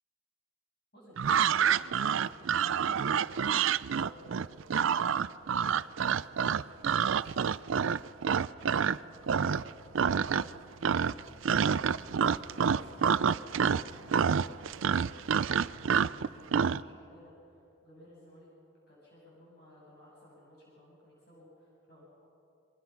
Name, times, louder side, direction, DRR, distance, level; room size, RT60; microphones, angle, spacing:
voice 1, 0.9-3.4 3.9-6.3 6.6-11.7 12.3-18.5 18.9-22.0, left 1 dB, 50° left, -5 dB, 7.0 m, -56 dB
sound 1, 1.2-9.0 9.3-9.7 9.9-10.6 10.8-16.8, right 7 dB, 70° right, 0.4 m, -27 dB
27.5 x 23.5 x 5.9 m, 2.8 s
head